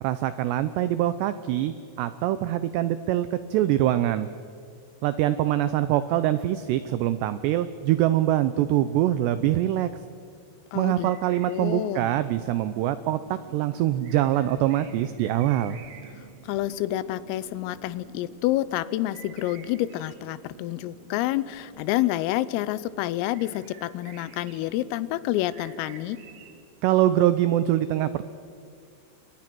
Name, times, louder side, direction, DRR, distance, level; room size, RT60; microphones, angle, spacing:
voice 1, 0.0-4.3 5.0-9.9 10.8-15.8 26.8-28.2, right 13 dB, 90° right, 13 dB, 2.4 m, -24 dB
voice 2, 10.7-11.1 11.5-12.1 16.4-26.2, left 15 dB, 90° left, 17 dB, 3.5 m, -28 dB
sound 1, 10.8-26.6, right 7 dB, 55° right, 2.8 m, -49 dB
29.5 x 25.5 x 6.1 m, 2.3 s
omnidirectional pair, 5.8 m